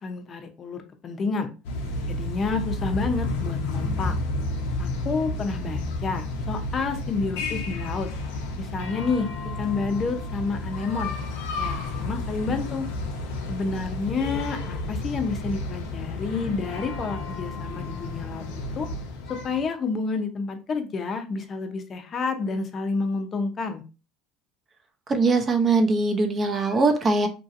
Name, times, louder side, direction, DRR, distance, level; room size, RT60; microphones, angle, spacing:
voice 1, 0.0-1.5 2.1-4.1 4.8-8.1 8.6-11.1 11.6-12.9 13.5-18.4 18.8-18.9 19.3-23.8, left 4 dB, 35° left, 6 dB, 0.6 m, -29 dB
sound 1, 1.6-19.6, left 2 dB, 85° left, 0.7 m, -31 dB
voice 2, 25.1-27.3, right 3 dB, 30° right, 4 dB, 0.6 m, -21 dB
3.0 x 2.7 x 2.5 m, 0.33 s
supercardioid pair, 110°, 0 cm